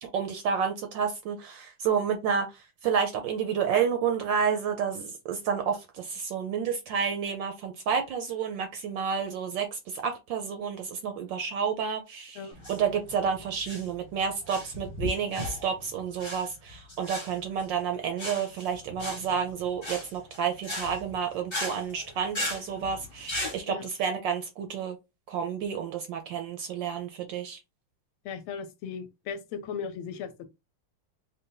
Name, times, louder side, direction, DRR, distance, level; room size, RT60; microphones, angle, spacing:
voice 1, 0.0-25.0 25.3-27.6, right 7 dB, 70° right, 1.1 m, -30 dB
sound 1, 12.5-23.6, left 1 dB, 25° left, 0.6 m, -37 dB
voice 2, 28.2-30.5, left 6 dB, 80° left, 1.4 m, -37 dB
3.9 x 2.2 x 3.8 m
omnidirectional pair, 2.4 m